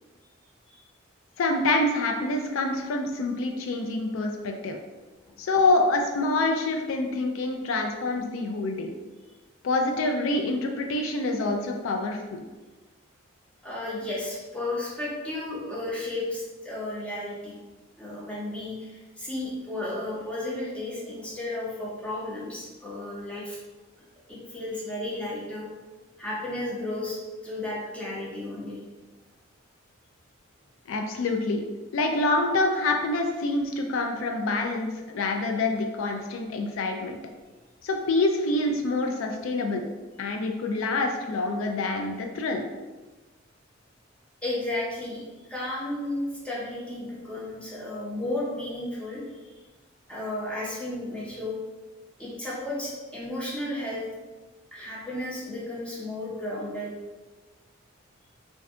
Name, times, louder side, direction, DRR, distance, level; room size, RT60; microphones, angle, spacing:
voice 1, 1.4-4.8 5.4-8.9 9.6-12.4 30.9-31.7 31.9-37.2 37.8-39.8 40.2-42.7, left 2 dB, 80° left, 3 dB, 0.4 m, -26 dB
voice 2, 13.6-17.6 18.0-23.6 24.3-25.7 26.2-27.2 27.4-28.8 44.4-49.2 50.1-51.6 52.2-54.1 54.7-56.9, left 1 dB, 5° left, -7 dB, 0.7 m, -33 dB
2.6 x 2.2 x 3.5 m, 1.2 s
head